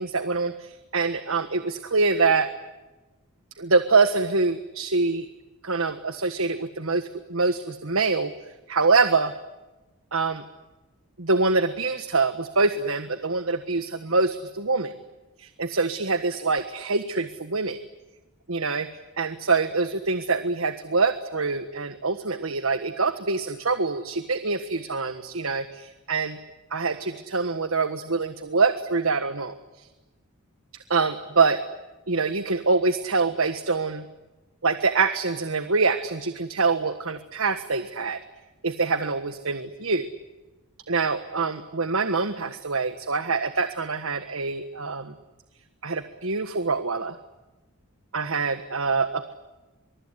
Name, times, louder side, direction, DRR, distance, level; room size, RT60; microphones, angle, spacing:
voice 1, 0.0-2.5 3.6-5.3 5.6-8.3 8.7-9.3 10.1-10.4 11.2-14.9 15.4-17.8 18.5-18.9 19.2-26.4 26.7-29.9 30.9-31.6 32.1-34.0 34.6-38.2 38.6-40.1 40.9-45.1 45.8-47.1 48.1-49.3, right 4 dB, 70° right, 10 dB, 1.5 m, -25 dB
24.0 x 23.5 x 9.8 m, 1.1 s
head